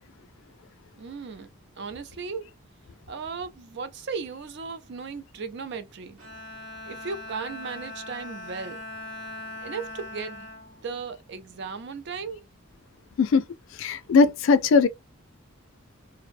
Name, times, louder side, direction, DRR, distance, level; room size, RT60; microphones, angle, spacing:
voice 1, 0.9-1.5 1.8-2.5 3.1-6.2 6.8-8.8 9.6-10.5 10.8-12.4, right 5 dB, 55° right, 0.4 m, -36 dB
Bowed string instrument, 6.2-11.7, left 2 dB, 90° right, 1.0 m, -41 dB
voice 2, 13.8-14.9, left 4 dB, 65° left, 0.3 m, -19 dB
2.5 x 2.0 x 2.5 m
head